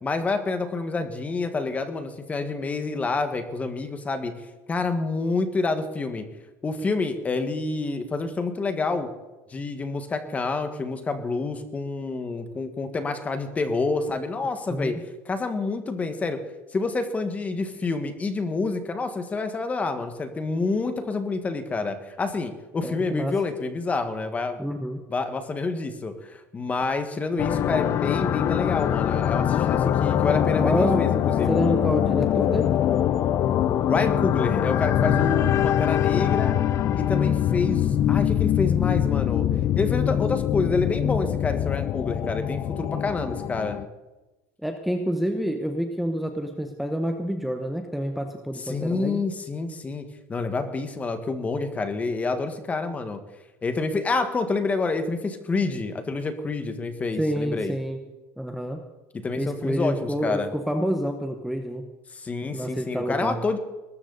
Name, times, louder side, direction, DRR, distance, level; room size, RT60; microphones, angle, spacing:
voice 1, 0.0-4.3 4.7-6.2 6.6-9.1 9.5-15.0 15.2-16.4 16.7-24.6 25.1-31.9 33.9-36.5 36.9-39.5 39.7-43.8 48.7-53.2 53.6-57.7 59.2-60.5 62.1-63.6, left 3 dB, 20° left, 8 dB, 1.6 m, -28 dB
voice 2, 22.8-23.4 24.6-25.0 29.7-29.9 30.6-31.1 31.5-32.8 44.6-49.2 57.2-58.0 58.4-58.8 59.4-61.9 62.5-63.4, equal, ahead, 5 dB, 1.1 m, -28 dB
sound 1, 27.4-43.9, left 10 dB, 40° left, 0.7 m, -23 dB
20.5 x 13.5 x 4.1 m, 1.1 s
supercardioid pair, 135°, 8 cm